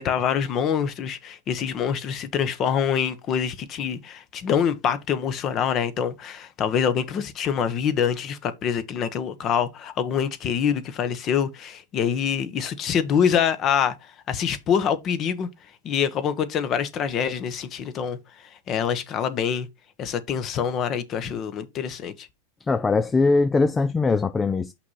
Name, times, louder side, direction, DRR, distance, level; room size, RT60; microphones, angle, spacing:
voice 1, 0.0-13.9 14.3-15.5 15.8-19.7 20.0-22.3, left 8 dB, 35° left, 1.0 m, -25 dB
voice 2, 22.7-24.7, left 3 dB, 15° left, 0.3 m, -21 dB
5.9 x 4.7 x 4.2 m
supercardioid pair, 135°, 0 cm